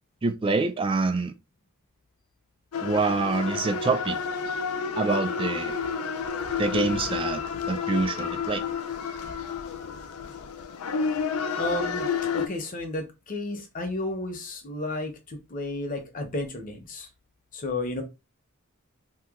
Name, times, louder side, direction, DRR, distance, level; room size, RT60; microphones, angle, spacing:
voice 1, 0.2-1.3 2.8-4.2 5.0-5.7 6.6-7.4 7.7-8.6, right 3 dB, 25° right, 0.3 m, -26 dB
sound 1, 2.7-12.5, left 6 dB, 90° left, 0.4 m, -30 dB
voice 2, 11.6-17.1 17.5-18.0, left 2 dB, 40° left, 0.7 m, -32 dB
2.9 x 2.2 x 3.5 m
head